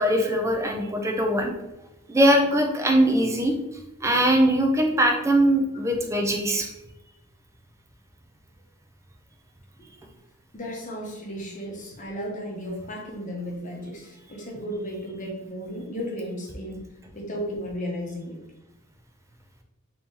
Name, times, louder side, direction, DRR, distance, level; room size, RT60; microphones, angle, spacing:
voice 1, 0.0-1.5 2.1-3.5 4.0-6.7, right 1 dB, 15° right, 2 dB, 0.4 m, -21 dB
voice 2, 10.5-16.8 17.1-18.4, equal, 35° left, -1 dB, 0.8 m, -34 dB
3.0 x 2.8 x 3.6 m, 0.93 s
head